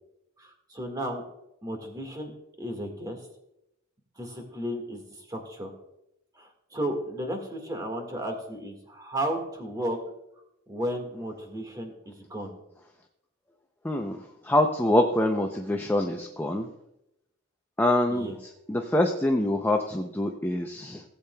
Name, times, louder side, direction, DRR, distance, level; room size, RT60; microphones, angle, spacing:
voice 1, 0.4-1.2 1.6-2.3 2.6-3.2 4.2-5.7 6.4-10.0 10.7-12.6 18.1-18.4, right 1 dB, 20° right, 4 dB, 1.7 m, -34 dB
voice 2, 13.8-16.7 17.8-18.3 18.7-21.0, left 1 dB, 10° left, 3 dB, 0.5 m, -25 dB
17.5 x 8.3 x 2.3 m, 0.86 s
head